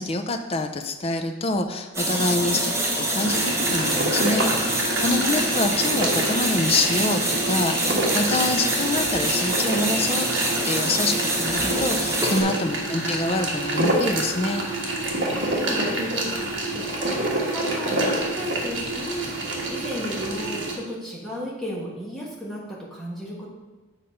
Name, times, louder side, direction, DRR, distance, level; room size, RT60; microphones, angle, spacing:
voice 1, 0.0-10.3 10.6-14.7, left 2 dB, 30° left, 6 dB, 0.4 m, -26 dB
sound 1, 1.9-12.4, right 1 dB, 15° right, 0.9 m, -25 dB
sound 2, 3.2-20.8, right 2 dB, 60° right, 1.4 m, -27 dB
voice 2, 4.9-5.3 12.5-12.9 15.3-23.5, equal, ahead, -5 dB, 1.4 m, -34 dB
7.6 x 4.1 x 5.2 m, 1.2 s
head